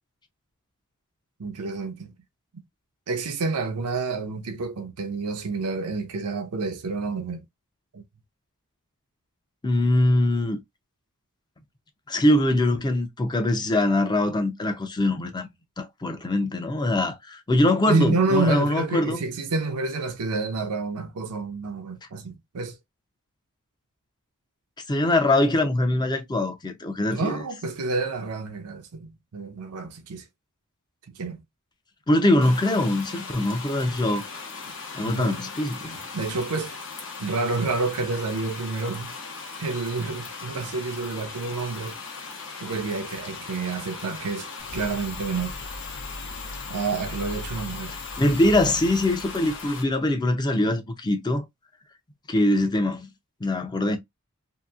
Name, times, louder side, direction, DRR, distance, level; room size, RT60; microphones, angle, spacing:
voice 1, 1.4-2.1 2.5-2.6 3.1-7.4 7.9-8.0 17.8-22.8 27.1-30.2 31.1-31.4 35.0-35.4 36.1-36.7 37.2-39.1 39.6-42.0 42.6-45.8 46.7-47.9, right 3 dB, 85° right, 0.6 m, -29 dB
voice 2, 9.6-10.6 12.1-15.5 15.8-19.2 24.9-27.4 32.1-34.4 34.9-36.0 48.2-51.5 52.3-53.1 53.4-54.0, left 1 dB, 20° left, 0.5 m, -23 dB
sound 1, 32.4-49.8, left 4 dB, 60° left, 0.9 m, -39 dB
sound 2, 44.6-50.0, left 2 dB, 90° left, 0.8 m, -39 dB
2.8 x 2.5 x 2.3 m
head